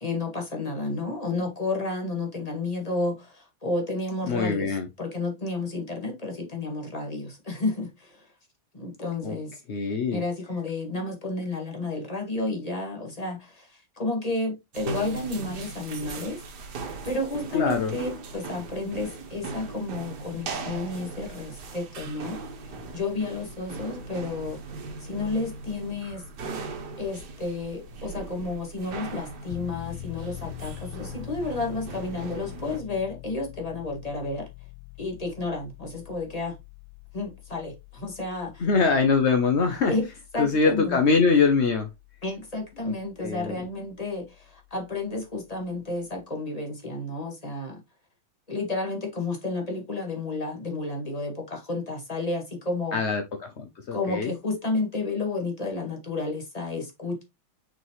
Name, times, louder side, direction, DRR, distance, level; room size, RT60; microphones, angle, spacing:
voice 1, 0.0-8.2 8.7-9.6 10.1-16.4 17.0-22.4 22.9-24.6 25.0-26.2 27.0-34.5 35.0-36.6 37.1-38.7 39.9-40.1 40.3-41.0 42.2-47.8 48.5-53.0 53.9-57.2, left 3 dB, 20° left, 1.7 m, -31 dB
voice 2, 4.2-4.9 9.2-9.4 9.7-10.2 17.5-17.9 38.6-40.0 40.4-41.9 42.9-43.0 43.2-43.6 52.9-54.3, left 4 dB, 55° left, 0.7 m, -23 dB
sound 1, 14.7-32.8, right 3 dB, 55° right, 1.6 m, -39 dB
Piano, 29.5-46.2, left 17 dB, 85° left, 1.5 m, -45 dB
6.2 x 5.1 x 3.2 m
omnidirectional pair, 2.3 m